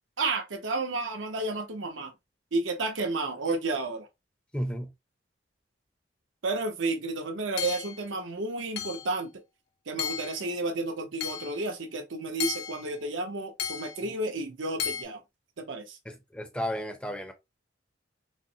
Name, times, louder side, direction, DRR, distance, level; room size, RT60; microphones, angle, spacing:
voice 1, 0.2-2.1 2.5-4.1 6.4-9.3 9.9-15.2 15.6-16.0, right 2 dB, 85° right, 0.7 m, -31 dB
voice 2, 4.5-4.9 16.1-17.3, equal, 5° left, 0.5 m, -33 dB
Hammer / Chink clink, 7.6-8.0 8.8-9.1 10.0-10.4 11.2-11.6 12.4-12.9 13.6-14.0 14.8-15.0, left 8 dB, 60° left, 0.5 m, -34 dB
3.9 x 2.0 x 2.6 m
head